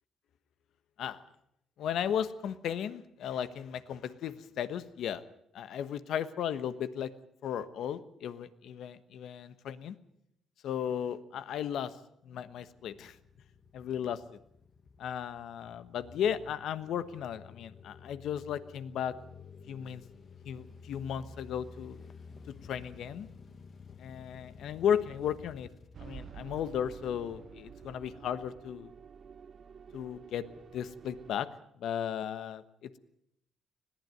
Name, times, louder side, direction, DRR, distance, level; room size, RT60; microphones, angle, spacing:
voice 1, 1.8-5.2 5.5-7.1 7.4-9.9 10.6-11.9 12.2-13.2 13.7-14.2 15.0-19.2 19.7-20.0 20.4-22.0 22.5-23.3 24.0-25.7 26.0-28.9 29.9-30.5 30.7-31.5 31.8-33.0, left 9 dB, 75° left, 13 dB, 1.2 m, -35 dB
sound 1, 12.4-26.7, left 5 dB, 50° left, 1.0 m, -52 dB
sound 2, 25.9-31.4, right 7 dB, 55° right, 0.9 m, -50 dB
20.5 x 15.5 x 9.2 m, 0.76 s
cardioid pair, 90°, 0 cm